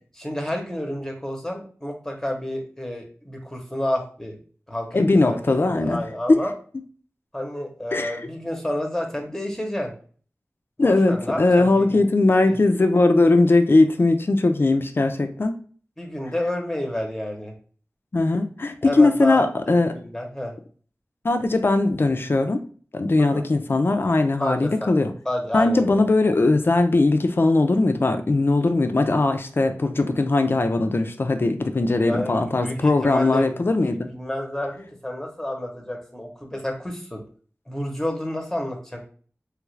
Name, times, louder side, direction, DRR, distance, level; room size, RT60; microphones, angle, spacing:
voice 1, 0.1-4.4 4.7-6.5 7.3-9.9 10.8-12.1 12.4-12.6 16.0-17.5 18.8-20.5 23.2-23.4 24.4-24.9 25.2-26.0 32.0-33.6 33.9-37.2 37.7-39.0, left 1 dB, 5° left, 2 dB, 0.8 m, -30 dB
voice 2, 4.9-6.0 6.3-6.4 7.9-8.2 10.8-15.5 18.1-19.9 21.2-22.6 22.9-25.1 25.5-34.1, left 2 dB, 45° left, 7 dB, 0.4 m, -19 dB
3.2 x 2.4 x 3.1 m, 0.43 s
wide cardioid pair, 65°, 5 cm